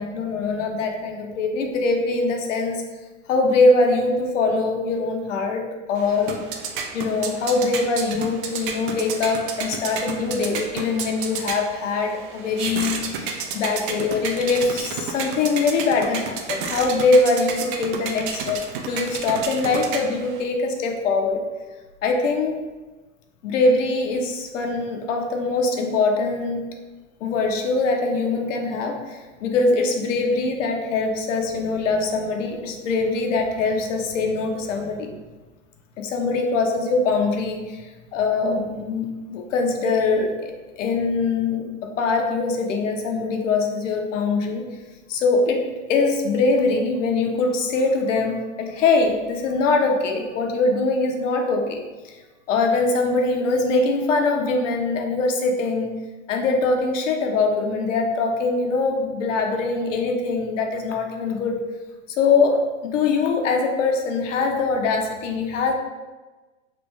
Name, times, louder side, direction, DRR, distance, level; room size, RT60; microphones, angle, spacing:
voice 1, 0.0-2.8 3.3-6.4 6.9-21.4 22.0-22.6 23.4-26.6 27.2-35.1 36.0-37.9 38.1-44.7 45.1-51.8 52.0-52.2 52.5-55.9 56.3-61.6 62.1-65.7, left 3 dB, 65° left, 3 dB, 0.7 m, -22 dB
sound 1, 6.0-20.4, right 5 dB, 45° right, 0.5 m, -31 dB
3.2 x 2.5 x 3.2 m, 1.2 s
hypercardioid pair, 125°, 40 cm